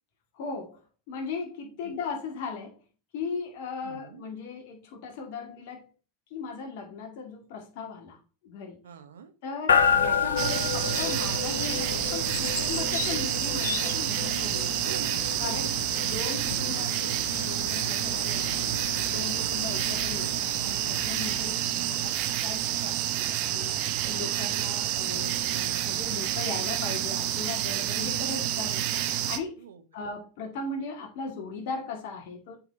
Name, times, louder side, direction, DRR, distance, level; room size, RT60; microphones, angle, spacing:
voice 1, 0.3-0.8 1.1-2.8 3.1-5.9 6.3-8.8 9.4-14.8 15.4-15.7 16.0-18.7 19.1-29.6 29.9-32.6, left 4 dB, 65° left, 1 dB, 2.0 m, -38 dB
voice 2, 3.8-4.3 8.8-9.3 14.8-15.7 16.0-16.1 27.9-28.2 29.6-29.8, right 7 dB, 85° right, 10 dB, 1.1 m, -44 dB
sound 1, 9.7-22.7, left 6 dB, 85° left, 0.7 m, -31 dB
sound 2, 10.4-29.4, right 12 dB, 55° right, 0.9 m, -29 dB
7.8 x 4.4 x 4.3 m, 0.33 s
hypercardioid pair, 95°, 0 cm